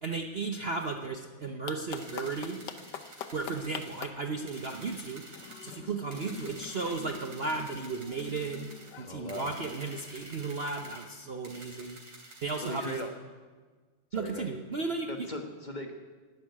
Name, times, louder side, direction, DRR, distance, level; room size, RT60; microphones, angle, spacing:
voice 1, 0.0-2.6 3.3-5.2 5.6-8.7 9.0-12.0 12.4-13.0 14.1-15.3, right 4 dB, 85° right, 4 dB, 0.5 m, -35 dB
sound 1, 1.7-10.2, left 9 dB, 65° left, 1.2 m, -46 dB
sound 2, 1.9-4.0 4.5-5.7 6.1-8.9 9.3-11.1 11.4-13.0, right 2 dB, 55° right, 4.4 m, -50 dB
voice 2, 9.0-9.5 12.6-13.1 14.1-14.5 15.1-15.9, left 1 dB, 25° left, 4 dB, 1.2 m, -38 dB
12.0 x 11.5 x 9.6 m, 1.4 s
omnidirectional pair, 2.4 m